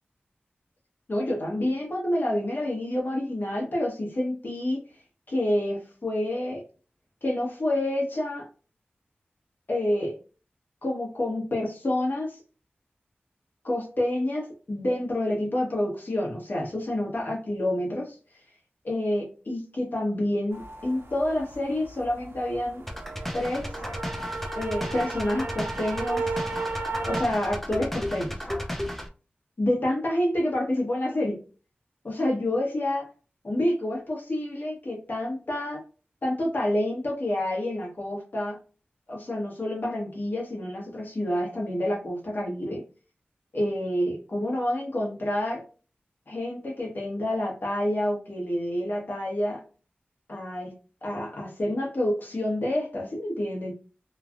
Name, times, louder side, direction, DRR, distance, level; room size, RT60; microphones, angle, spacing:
voice 1, 1.1-4.8 5.3-6.6 7.2-8.5 9.7-10.1 10.8-12.4 13.6-18.2 18.8-22.8 23.3-23.7 24.6-26.3 27.1-28.3 29.6-31.4 32.0-33.1 33.4-35.8 36.2-38.6 39.1-42.8 43.5-45.6 46.3-49.6 50.3-50.7 51.0-53.7, left 1 dB, 60° left, -1 dB, 1.1 m, -28 dB
sound 1, 20.5-27.2, right 3 dB, 90° right, 0.5 m, -34 dB
sound 2, 22.9-29.1, equal, 5° left, 0.5 m, -34 dB
3.1 x 2.4 x 2.4 m, 0.36 s
wide cardioid pair, 75°, 4 cm